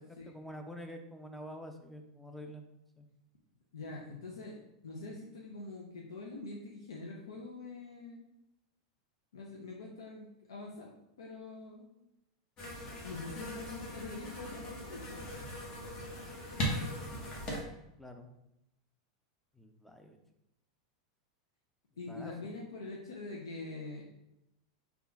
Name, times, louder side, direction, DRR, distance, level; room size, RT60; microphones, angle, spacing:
voice 1, 0.3-2.6 3.0-3.1 18.0-18.3 19.5-20.2 22.1-22.5, equal, 5° left, 5 dB, 0.5 m, -47 dB
voice 2, 3.7-4.6 4.8-8.2 9.3-10.9 11.2-11.9 13.0-15.2 22.0-24.0, left 3 dB, 85° left, -2 dB, 0.6 m, -44 dB
sound 1, 12.6-17.6, equal, 35° left, 1.2 m, -39 dB
3.7 x 2.4 x 4.0 m, 0.85 s
hypercardioid pair, 100°, 2 cm